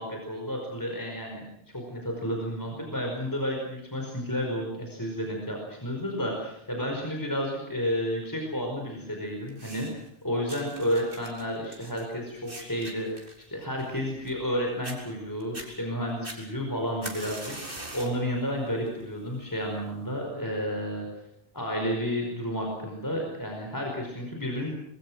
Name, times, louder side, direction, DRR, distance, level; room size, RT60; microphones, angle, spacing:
voice 1, 0.0-1.4 1.7-13.2 13.5-21.1 21.5-24.7, equal, 15° left, 0 dB, 5.3 m, -31 dB
sound 1, 9.5-10.1 10.5-14.5 14.8-15.0 15.4-15.7 16.2-18.2 18.7-19.0 19.8-19.9, right 1 dB, 50° right, 4.7 m, -42 dB
26.5 x 22.5 x 6.3 m, 0.77 s
omnidirectional pair, 1.2 m